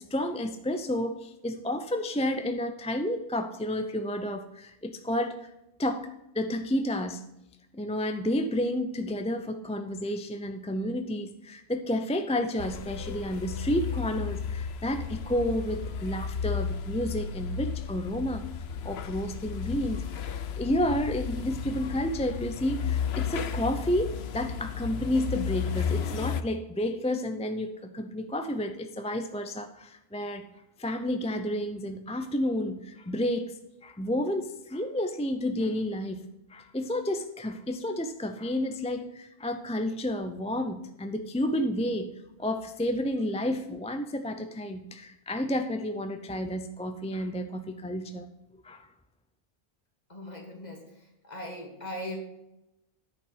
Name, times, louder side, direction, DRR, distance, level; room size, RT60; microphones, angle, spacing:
voice 1, 0.0-5.5 5.8-6.1 6.3-7.2 7.7-18.5 18.8-30.4 30.8-33.5 33.8-48.3 48.6-48.9, left 1 dB, 10° left, 7 dB, 0.5 m, -31 dB
sound 1, 12.6-26.4, left 7 dB, 90° left, 0.9 m, -33 dB
voice 2, 50.1-50.8 51.2-52.2, left 1 dB, 45° left, 2 dB, 2.1 m, -39 dB
10.0 x 5.6 x 6.5 m, 0.90 s
omnidirectional pair, 1.0 m